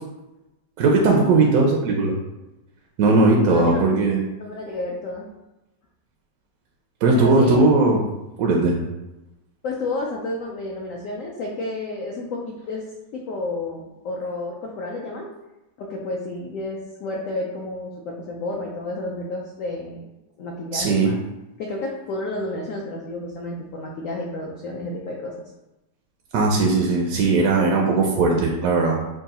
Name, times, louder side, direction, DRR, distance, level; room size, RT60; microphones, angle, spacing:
voice 1, 0.8-2.1 3.0-4.2 7.0-8.0 8.4-8.8 20.7-21.1 26.3-29.0, right 3 dB, 70° right, 0 dB, 0.8 m, -18 dB
voice 2, 3.4-3.8 4.4-5.3 7.1-7.6 9.6-12.8 13.1-15.3 15.8-20.1 20.4-21.2 21.6-25.3, left 2 dB, 75° left, -1 dB, 0.7 m, -31 dB
3.6 x 2.3 x 4.0 m, 0.99 s
omnidirectional pair, 1.9 m